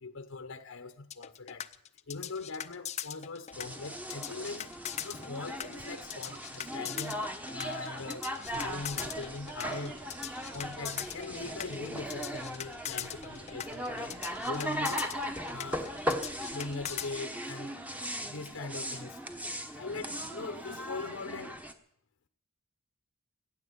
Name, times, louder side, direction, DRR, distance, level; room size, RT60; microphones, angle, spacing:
voice 1, 0.0-1.7 2.1-4.7 5.0-8.2 8.5-10.0 10.5-15.1 15.5-15.9 16.5-17.7 18.3-19.2 19.8-21.6, left 3 dB, 65° left, 0.9 m, -41 dB
sound 1, 1.1-17.1, left 10 dB, 30° left, 0.5 m, -40 dB
sound 2, 3.5-21.7, equal, 5° right, 1.0 m, -38 dB
sound 3, 8.4-17.1, right 2 dB, 65° right, 7.5 m, -56 dB
16.0 x 8.8 x 9.5 m
head